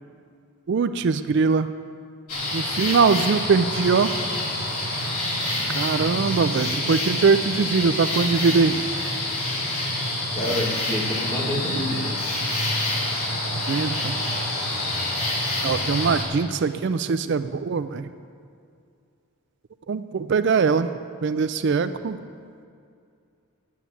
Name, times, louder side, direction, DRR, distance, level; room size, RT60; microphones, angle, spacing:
voice 1, 0.7-1.7 2.5-4.1 5.7-8.8 13.7-14.2 15.6-18.1 19.9-20.9 21.2-22.2, right 5 dB, 50° right, 11 dB, 0.3 m, -22 dB
sound 1, 2.3-16.2, left 1 dB, 80° left, 2.7 m, -27 dB
voice 2, 10.3-12.1, left 1 dB, 25° left, -3 dB, 2.0 m, -28 dB
9.5 x 9.0 x 7.5 m, 2.4 s
head